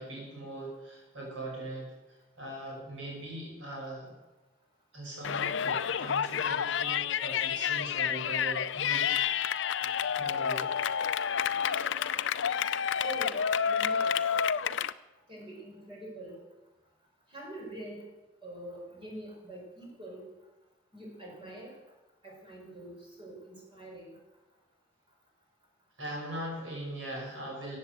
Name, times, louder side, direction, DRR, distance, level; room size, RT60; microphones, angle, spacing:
voice 1, 0.0-1.9 2.4-4.1 4.9-9.1 10.2-10.7 26.0-27.8, right 1 dB, 80° right, -2 dB, 6.8 m, -40 dB
Yell, 5.2-14.9, left 8 dB, 70° left, 0.5 m, -29 dB
voice 2, 13.0-14.2 15.3-16.4 17.3-18.1 18.4-20.3 20.9-21.8 22.2-24.2, right 1 dB, 30° right, -2 dB, 5.7 m, -44 dB
15.5 x 8.4 x 7.9 m, 1.1 s
head